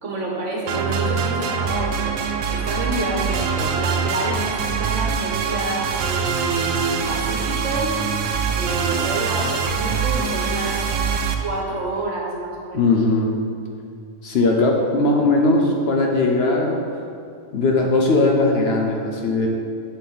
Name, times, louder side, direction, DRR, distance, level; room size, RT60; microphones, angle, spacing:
voice 1, 0.0-2.2 2.5-8.0 8.5-10.8 11.4-12.9, right 2 dB, 60° right, -2 dB, 1.5 m, -28 dB
sound 1, 0.7-11.4, right 6 dB, 90° right, 1.1 m, -24 dB
voice 2, 12.7-13.4 14.2-16.8 17.5-19.5, left 2 dB, 55° left, 1 dB, 0.9 m, -19 dB
7.4 x 6.7 x 4.0 m, 2.4 s
omnidirectional pair, 1.4 m